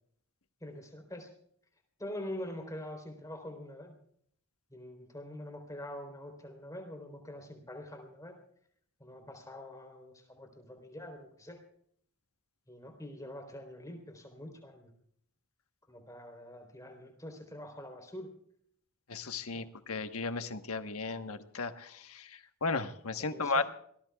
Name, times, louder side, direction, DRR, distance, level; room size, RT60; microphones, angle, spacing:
voice 1, 0.6-1.3 2.0-3.9 4.7-8.3 9.0-11.6 12.7-14.9 15.9-18.3 19.5-19.7 23.2-23.5, left 1 dB, 15° left, 4 dB, 3.7 m, -45 dB
voice 2, 19.1-23.6, left 3 dB, 75° left, 8 dB, 1.2 m, -35 dB
27.0 x 19.0 x 2.4 m, 0.66 s
head